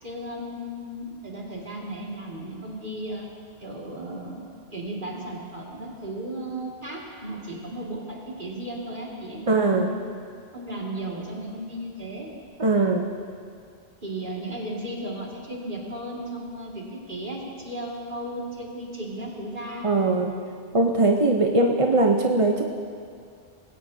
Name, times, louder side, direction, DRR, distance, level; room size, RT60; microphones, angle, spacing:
voice 1, 0.0-3.3 3.6-4.4 4.7-10.0 10.5-12.3 14.0-19.9, right 1 dB, 55° right, -3 dB, 2.4 m, -35 dB
voice 2, 9.5-9.9 12.6-13.1 19.8-20.3 20.7-22.6, right 2 dB, 35° right, 1 dB, 0.8 m, -20 dB
19.5 x 16.5 x 2.8 m, 2.3 s
omnidirectional pair, 1.0 m